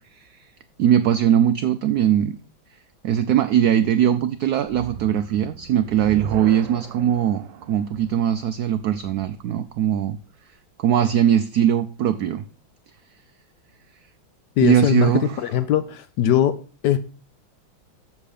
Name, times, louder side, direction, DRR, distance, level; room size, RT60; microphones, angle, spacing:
voice 1, 0.8-2.4 3.0-10.2 10.8-12.5 14.6-15.3, right 10 dB, 90° right, 11 dB, 0.8 m, -20 dB
sound 1, 4.7-9.9, right 8 dB, 70° right, 1.3 m, -39 dB
voice 2, 14.6-16.5 16.8-17.0, left 11 dB, 70° left, 12 dB, 1.0 m, -20 dB
7.4 x 7.1 x 5.0 m, 0.36 s
omnidirectional pair, 2.2 m